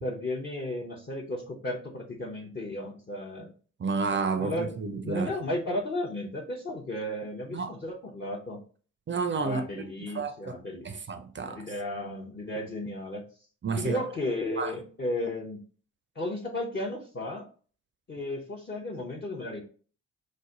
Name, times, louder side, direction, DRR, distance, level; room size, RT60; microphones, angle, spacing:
voice 1, 0.0-3.5 4.4-4.7 5.0-8.6 9.4-11.1 11.4-13.2 13.8-15.6 16.1-17.5 18.1-19.6, left 1 dB, 25° left, 0.8 m, -34 dB
voice 2, 3.8-5.3 7.5-7.7 9.1-9.6 10.1-10.5 10.8-11.6 13.6-14.0 14.6-14.7, right 4 dB, 30° right, 0.6 m, -30 dB
3.2 x 2.1 x 3.7 m
hypercardioid pair, 40°, 39 cm